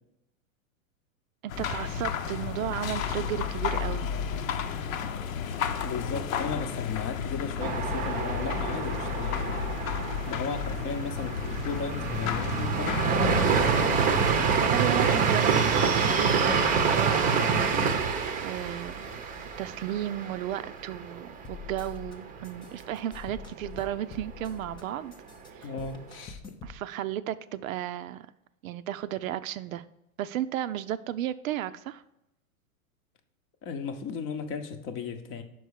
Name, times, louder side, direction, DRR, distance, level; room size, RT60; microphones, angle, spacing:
voice 1, 1.4-4.1 14.6-16.3 16.7-17.6 18.4-19.1 19.6-25.1 25.5-25.7 26.6-28.3 28.6-29.8 30.2-32.0, right 12 dB, 70° right, 13 dB, 0.6 m, -34 dB
sound 1, 1.5-14.4, left 7 dB, 70° left, 0.9 m, -32 dB
voice 2, 5.8-9.8 10.3-13.2 25.6-26.5 33.6-35.4, left 5 dB, 30° left, 7 dB, 0.7 m, -35 dB
sound 2, 7.6-21.3 21.7-21.8 22.1-22.7, right 5 dB, 20° right, 0.7 m, -27 dB
sound 3, 21.4-22.1 22.4-24.8 25.1-26.8, left 6 dB, 10° left, 0.4 m, -45 dB
5.9 x 4.6 x 6.4 m, 0.87 s
hypercardioid pair, 125°, 42 cm